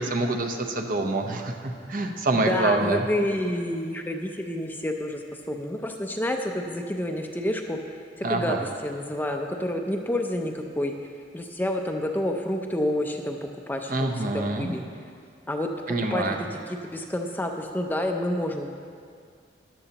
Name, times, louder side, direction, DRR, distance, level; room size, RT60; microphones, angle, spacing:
voice 1, 0.0-3.1 8.2-8.6 13.9-14.7 15.9-16.4, right 2 dB, 50° right, 4 dB, 0.8 m, -26 dB
voice 2, 2.3-5.2 5.5-7.8 8.3-10.9 11.3-13.4 13.7-14.8 15.5-18.7, left 1 dB, 10° left, 3 dB, 0.5 m, -29 dB
13.5 x 11.0 x 2.9 m, 2.2 s
head